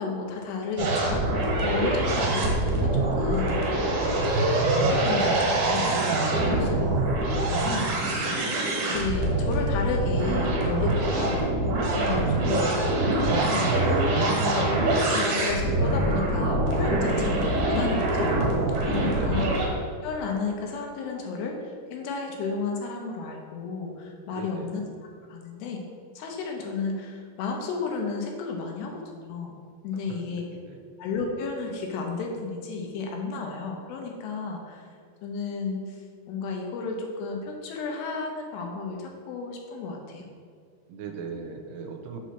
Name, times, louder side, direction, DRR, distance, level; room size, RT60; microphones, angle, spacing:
voice 1, 0.0-2.5 2.8-5.9 6.3-6.9 7.4-7.9 8.5-8.6 8.8-11.4 11.9-14.0 14.4-18.3 18.8-19.5 20.0-24.8 25.3-25.8 26.2-29.5 29.8-30.4 31.0-34.9 35.2-36.0 36.3-40.3, left 4 dB, 90° left, 1 dB, 3.0 m, -32 dB
sound 1, 0.8-19.7, right 2 dB, 70° right, 2.9 m, -24 dB
voice 2, 1.9-2.2 6.4-6.9 19.0-19.4 24.3-24.7 30.1-30.8 40.9-42.2, right 5 dB, 90° right, 4 dB, 2.7 m, -39 dB
6.8 x 3.1 x 5.9 m, 2.2 s
omnidirectional pair, 4.7 m